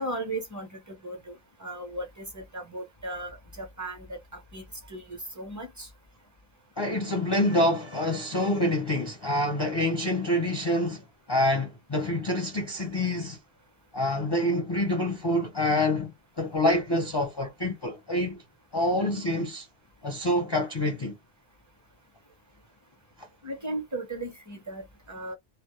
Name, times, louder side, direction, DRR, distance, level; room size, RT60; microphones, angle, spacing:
voice 1, 0.0-5.9 19.0-19.1 23.4-25.3, right 1 dB, 20° right, 0.5 m, -37 dB
voice 2, 6.8-13.4 13.9-16.1 16.4-18.4 18.7-19.7 20.0-21.1, left 1 dB, 35° left, 0.4 m, -26 dB
2.2 x 2.0 x 2.9 m
omnidirectional pair, 1.1 m